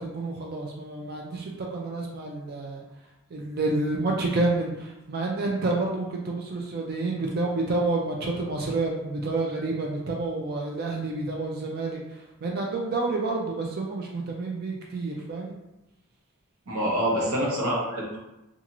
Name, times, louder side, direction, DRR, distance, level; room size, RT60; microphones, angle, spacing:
voice 1, 0.0-2.8 3.3-15.5, right 2 dB, 45° right, -1 dB, 0.4 m, -29 dB
voice 2, 16.7-18.2, equal, 85° right, -4 dB, 0.9 m, -26 dB
2.5 x 2.4 x 2.9 m, 0.92 s
head